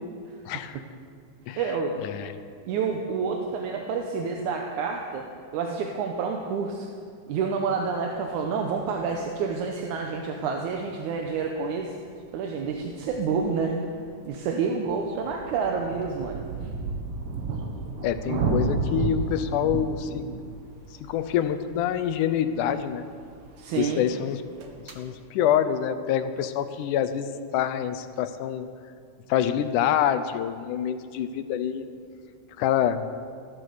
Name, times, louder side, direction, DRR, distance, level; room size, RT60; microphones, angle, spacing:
voice 1, 0.5-0.8 1.5-1.6 2.0-2.4 18.0-20.3 21.1-23.1 23.8-24.4 24.9-28.7 29.3-31.9 32.6-33.1, left 9 dB, 85° left, 11 dB, 2.2 m, -26 dB
voice 2, 1.6-2.0 2.7-5.3 5.5-6.9 7.3-11.9 12.3-13.9 14.3-16.7 23.6-24.1, right 5 dB, 75° right, 2 dB, 2.3 m, -28 dB
sound 1, 8.4-8.5 8.9-9.4 11.3-11.4 11.8-11.9 12.1-12.2 12.3-13.6 14.1-24.1 24.4-25.0, right 4 dB, 55° right, 1.8 m, -33 dB
15.0 x 10.5 x 6.6 m, 2.3 s
omnidirectional pair, 3.5 m